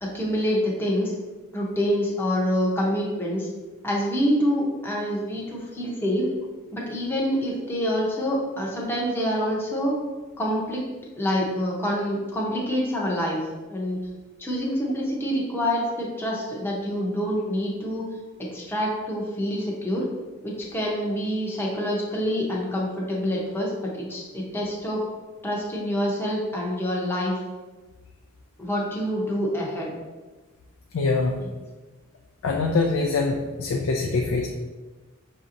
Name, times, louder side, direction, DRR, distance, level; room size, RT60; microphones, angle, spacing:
voice 1, 0.0-1.1 1.5-3.5 3.8-6.3 6.7-9.9 10.4-10.8 11.2-14.0 14.4-18.1 18.4-20.1 20.4-25.0 25.4-27.4 28.6-29.9 31.4-31.5, equal, 10° left, -3 dB, 0.7 m, -26 dB
voice 2, 30.9-31.4 32.4-34.5, left 3 dB, 80° left, 1 dB, 0.4 m, -24 dB
6.0 x 2.8 x 2.5 m, 1.3 s
head